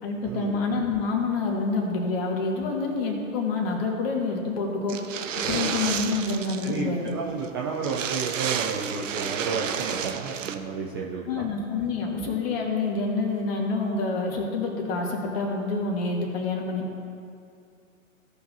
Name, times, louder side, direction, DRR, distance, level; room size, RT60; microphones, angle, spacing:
voice 1, 0.0-5.0 5.3-7.1 11.3-16.8, left 3 dB, 45° left, 1 dB, 1.9 m, -27 dB
sound 1, 4.9-6.8 7.1-7.2 7.4-7.5 7.8-10.5, right 8 dB, 65° right, 0.7 m, -31 dB
voice 2, 5.4-5.8 6.6-11.5, right 5 dB, 20° right, -2 dB, 0.4 m, -32 dB
16.0 x 5.7 x 2.8 m, 2.5 s
figure-of-eight pair, 110°, 41 cm